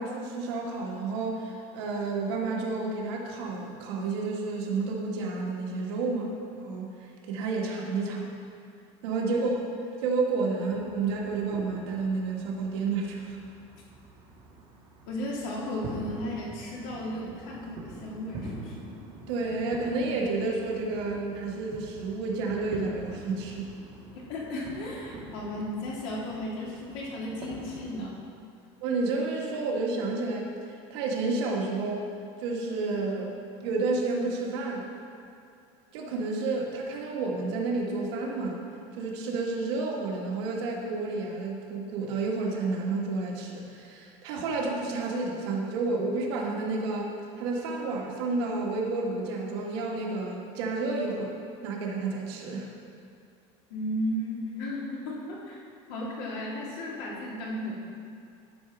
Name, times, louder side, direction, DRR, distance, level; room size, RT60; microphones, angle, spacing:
voice 1, 0.0-6.9 7.2-8.3 9.0-9.5 10.0-13.4 19.3-23.7 28.8-30.5 30.9-32.1 32.4-33.3 33.6-34.8 35.9-38.6 39.0-51.3 51.6-52.7, right 3 dB, 75° right, -1 dB, 1.5 m, -30 dB
sound 1, 10.7-28.0, right 2 dB, 30° right, 1.5 m, -45 dB
voice 2, 15.1-18.9 24.2-28.2 53.7-55.6 55.9-57.8, left 1 dB, 60° left, -3 dB, 2.3 m, -35 dB
11.0 x 5.0 x 5.9 m, 2.4 s
cardioid pair, 170°, 14 cm